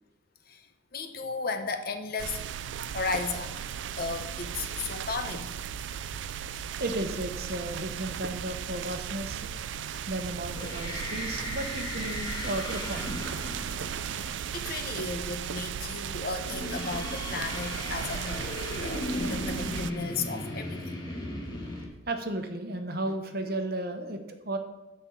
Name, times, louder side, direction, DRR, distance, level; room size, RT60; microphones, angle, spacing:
voice 1, 0.9-2.4 2.9-3.6 4.0-5.6 14.3-20.9, left 4 dB, 50° left, 7 dB, 0.8 m, -35 dB
sound 1, 2.2-19.9, right 8 dB, 70° right, 0.4 m, -36 dB
voice 2, 6.8-9.8 10.1-13.1 18.7-19.0 22.1-24.6, right 1 dB, 50° right, 6 dB, 1.0 m, -34 dB
sound 2, 10.4-14.9 16.4-21.9, left 1 dB, 25° left, 1.8 m, -37 dB
10.0 x 4.4 x 7.2 m, 1.1 s
head